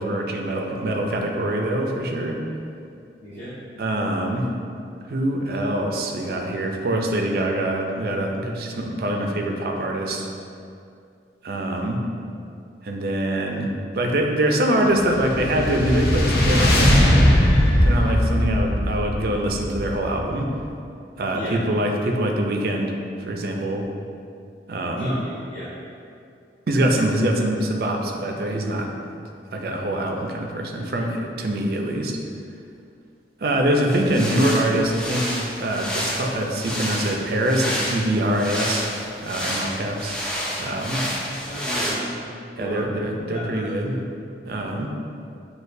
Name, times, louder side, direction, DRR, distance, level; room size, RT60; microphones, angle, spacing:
voice 1, 0.0-2.4 3.8-4.5 5.1-10.3 11.4-12.1 12.8-13.7 13.9-17.0 17.8-20.5 21.2-22.9 23.3-23.9 24.7-25.1 26.7-28.9 29.5-32.2 33.4-38.9 39.2-40.2 40.6-41.0 42.6-43.9 44.4-44.9, right 1 dB, 55° right, 1 dB, 0.4 m, -24 dB
voice 2, 3.2-3.5 21.3-21.6 24.9-25.7 41.4-42.1 42.6-42.9 43.3-43.7, equal, 40° left, -16 dB, 1.1 m, -33 dB
sound 1, 14.9-20.4, equal, 60° left, 0.6 m, -19 dB
sound 2, 33.9-41.9, equal, 5° left, 0.4 m, -29 dB
6.4 x 2.3 x 2.6 m, 2.5 s
head